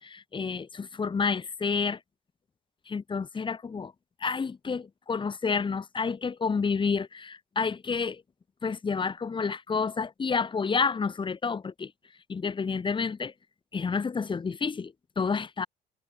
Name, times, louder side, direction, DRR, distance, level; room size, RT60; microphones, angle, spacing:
voice 1, 0.0-2.0 2.9-3.9 4.2-8.2 8.6-11.9 12.3-13.3 13.7-15.7, left 5 dB, 30° left, 3.4 m, -29 dB
cardioid pair, 110°, 17 cm